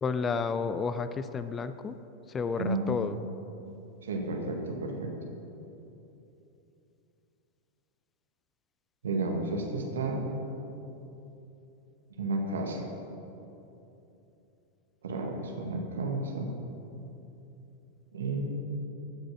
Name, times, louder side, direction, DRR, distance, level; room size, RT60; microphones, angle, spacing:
voice 1, 0.0-2.0 2.3-3.2, left 5 dB, 20° left, 12 dB, 0.4 m, -31 dB
voice 2, 2.6-3.1 4.0-5.1 9.0-10.3 12.2-12.8 15.0-16.5 18.1-18.6, right 2 dB, 65° right, 2 dB, 1.7 m, -32 dB
14.5 x 6.2 x 5.7 m, 2.9 s
figure-of-eight pair, 90°, 0 cm